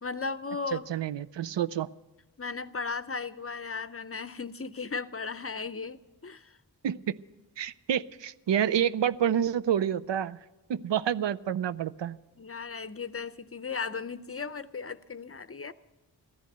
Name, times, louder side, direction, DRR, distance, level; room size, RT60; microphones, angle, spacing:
voice 1, 0.0-0.9 2.4-6.6 12.4-15.7, left 5 dB, 35° left, 14 dB, 0.6 m, -36 dB
voice 2, 0.7-1.9 6.8-7.1 7.6-10.4 10.7-12.2, right 9 dB, 85° right, 14 dB, 0.5 m, -28 dB
15.0 x 11.0 x 6.7 m, 1.1 s
wide cardioid pair, 55°, 42 cm